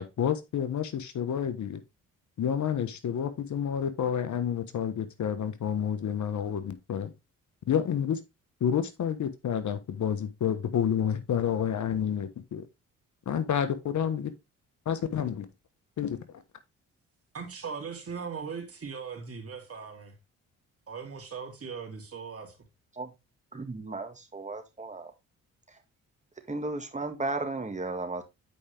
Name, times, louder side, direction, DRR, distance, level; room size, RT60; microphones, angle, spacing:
voice 1, 0.0-1.8 2.4-7.1 7.7-8.2 8.6-12.6 13.3-14.3 14.9-15.5 16.0-16.2, left 8 dB, 60° left, 1.2 m, -29 dB
voice 2, 17.3-20.1 20.9-22.6, right 6 dB, 45° right, 2.9 m, -39 dB
voice 3, 23.5-25.1 25.7-25.8 26.5-28.2, right 2 dB, 20° right, 1.9 m, -35 dB
8.4 x 5.0 x 3.4 m
supercardioid pair, 70°, 33 cm